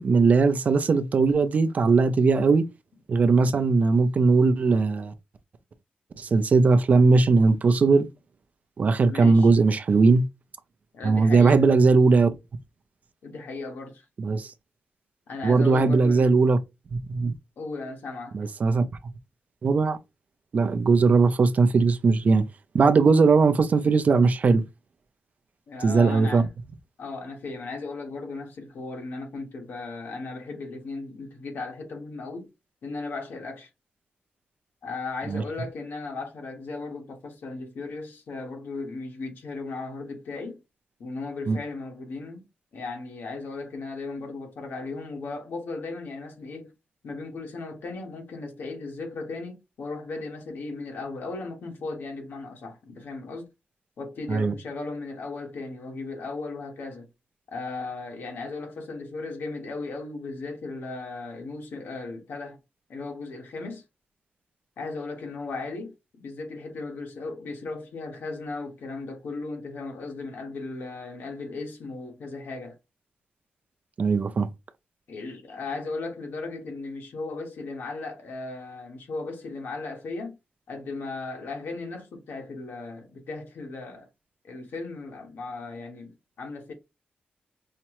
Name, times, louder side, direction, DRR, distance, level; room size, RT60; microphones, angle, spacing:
voice 1, 0.0-2.6 3.1-5.1 6.2-8.1 8.8-10.2 11.0-12.3 14.2-14.5 15.4-16.6 16.9-17.3 18.3-18.8 19.6-20.0 20.5-22.4 22.7-24.6 25.8-26.4 35.3-35.4 41.5-41.6 54.3-54.5 74.0-74.5, right 4 dB, 45° right, 0.4 m, -19 dB
voice 2, 9.1-9.5 10.9-11.7 13.2-14.0 15.3-16.4 17.6-18.4 25.7-26.5 27.0-32.5 32.8-33.7 34.8-40.6 41.0-42.4 42.7-46.7 47.0-53.5 54.0-57.1 57.5-62.6 62.9-63.8 64.8-72.8 75.1-80.3 80.7-84.1 84.4-86.7, left 3 dB, 75° left, 1.3 m, -36 dB
5.7 x 2.1 x 2.9 m
wide cardioid pair, 130°, 4 cm